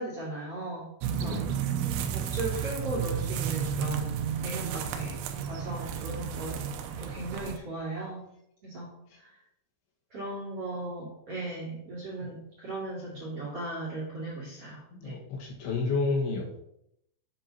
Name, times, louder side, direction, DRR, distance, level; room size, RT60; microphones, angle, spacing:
voice 1, 0.0-1.4 2.1-4.1 4.4-5.2 5.5-6.7 7.0-8.2 8.6-8.9 9.2-9.3 10.1-15.1, right 2 dB, 45° right, -6 dB, 2.2 m, -37 dB
sound 1, 1.0-7.6, right 8 dB, 80° right, 2.9 m, -32 dB
voice 2, 14.9-16.5, left 3 dB, 75° left, -2 dB, 3.8 m, -30 dB
10.0 x 7.9 x 2.9 m, 0.77 s
omnidirectional pair, 5.7 m